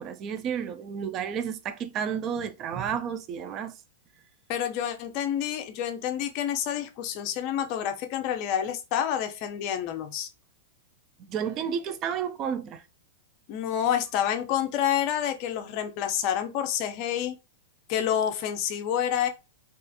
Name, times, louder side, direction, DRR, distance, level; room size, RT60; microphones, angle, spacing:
voice 1, 0.0-3.7 11.2-12.8, right 7 dB, 30° right, 0.3 m, -31 dB
voice 2, 4.5-10.3 13.5-17.3 17.9-19.3, left 9 dB, 40° left, 0.5 m, -28 dB
2.4 x 2.4 x 2.6 m
supercardioid pair, 155°, 0 cm